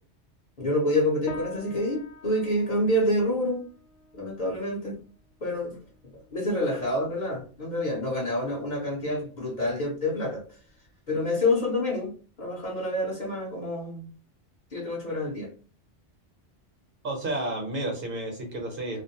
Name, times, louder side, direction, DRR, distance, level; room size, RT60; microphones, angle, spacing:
voice 1, 0.6-3.6 4.1-5.0 5.4-5.8 6.3-10.4 11.1-12.1 12.4-14.1 14.7-15.5, left 1 dB, 45° left, 0.7 m, -27 dB
sound 1, 1.3-10.9, left 3 dB, 75° left, 0.9 m, -48 dB
voice 2, 17.0-19.0, right 1 dB, 55° right, 0.9 m, -31 dB
2.5 x 2.0 x 2.7 m
omnidirectional pair, 1.2 m